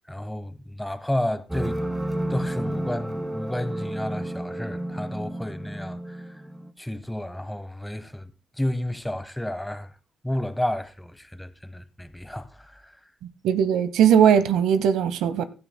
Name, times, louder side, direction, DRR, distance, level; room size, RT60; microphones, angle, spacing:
voice 1, 0.1-1.8 2.3-6.4 6.8-8.3 8.6-9.9 10.2-13.0, left 1 dB, 5° left, 0.9 m, -31 dB
sound 1, 1.5-6.7, right 1 dB, 10° right, 1.3 m, -31 dB
voice 2, 13.4-15.4, right 8 dB, 85° right, 0.8 m, -19 dB
15.5 x 12.5 x 2.2 m
cardioid pair, 90°, 0 cm